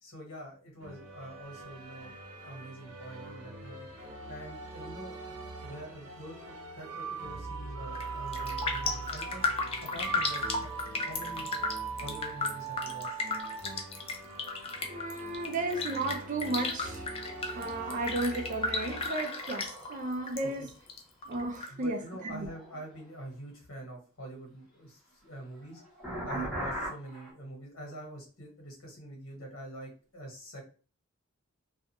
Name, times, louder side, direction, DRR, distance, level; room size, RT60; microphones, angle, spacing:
voice 1, 0.0-3.9 4.3-9.4 9.8-11.5 12.0-13.2 20.4-20.7 21.7-25.8 26.2-30.6, right 1 dB, 75° left, 1.3 m, -45 dB
sound 1, 0.8-19.1, right 4 dB, 85° right, 0.9 m, -41 dB
sound 2, 7.7-17.3 17.8-23.2 25.1-27.3, right 1 dB, ahead, 0.8 m, -46 dB
Raindrop, 7.8-8.1 8.3-20.4 20.7-21.7 22.1-22.2, left 3 dB, 30° left, 0.4 m, -34 dB
voice 2, 14.9-17.0 17.5-20.7 21.3-22.0 22.2-22.5, right 2 dB, 35° right, 0.5 m, -34 dB
2.4 x 2.2 x 2.8 m
head